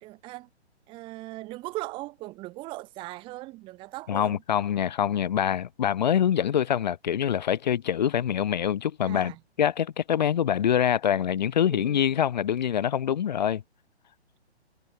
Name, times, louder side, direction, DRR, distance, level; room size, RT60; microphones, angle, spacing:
voice 1, 0.0-0.5 0.9-4.4 9.0-9.4 11.7-12.0, right 19 dB, 15° right, 1.5 m, -39 dB
voice 2, 4.1-9.3 9.6-13.6, left 9 dB, 40° left, 1.4 m, -25 dB
figure-of-eight pair, 135°, 34 cm